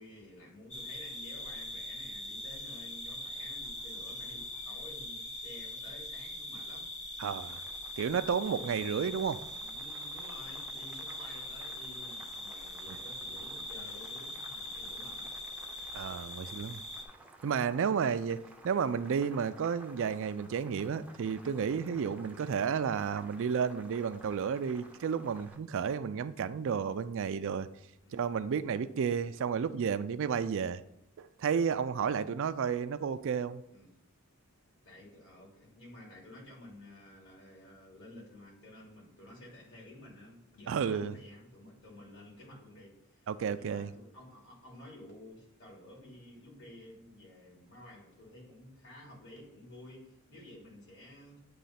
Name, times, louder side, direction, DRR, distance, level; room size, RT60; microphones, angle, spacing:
voice 1, 0.0-7.2 9.5-15.3 28.0-28.4 28.6-28.9 33.7-33.9 34.8-51.4, left 1 dB, 60° left, 2.9 m, -52 dB
sound 1, 0.7-17.0, left 1 dB, 35° left, 1.0 m, -42 dB
voice 2, 7.2-7.6 8.0-9.4 15.9-16.8 17.4-27.7 28.1-30.8 31.2-33.6 40.7-41.2 43.3-43.9, right 6 dB, 60° right, 0.4 m, -32 dB
Boiling, 7.4-25.6, right 2 dB, 5° right, 0.5 m, -56 dB
8.7 x 3.1 x 5.7 m
head